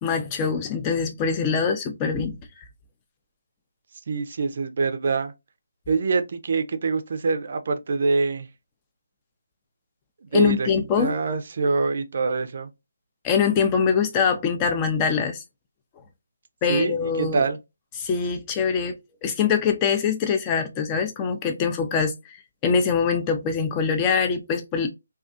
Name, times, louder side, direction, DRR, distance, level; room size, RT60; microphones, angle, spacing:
voice 1, 0.0-2.3 10.3-11.1 13.2-15.4 16.6-17.4 18.0-22.4 22.6-24.9, left 6 dB, 20° left, 0.4 m, -23 dB
voice 2, 4.1-5.3 5.9-8.5 10.3-10.7 11.0-12.7 16.7-17.6, right 4 dB, 50° right, 0.4 m, -24 dB
2.3 x 2.3 x 2.5 m
figure-of-eight pair, 155°, 0 cm